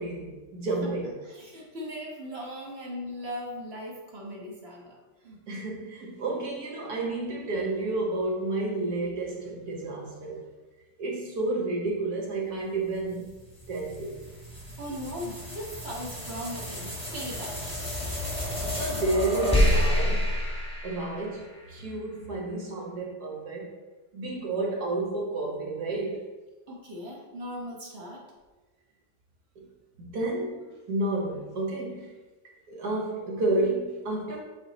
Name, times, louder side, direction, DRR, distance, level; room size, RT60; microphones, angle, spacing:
voice 1, 0.0-1.1 5.5-10.4 11.0-13.3 13.7-14.2 18.6-20.3 20.8-23.7 24.1-26.3 29.6-29.7 30.0-32.1 32.7-34.4, right 2 dB, 65° right, -2 dB, 1.4 m, -31 dB
voice 2, 1.2-5.0 5.2-5.4 14.8-17.6 26.7-28.2, equal, 45° right, -2 dB, 1.1 m, -38 dB
sound 1, 13.1-21.7, left 1 dB, 5° left, 1.0 m, -29 dB
8.0 x 3.0 x 3.9 m, 1.2 s
omnidirectional pair, 1.8 m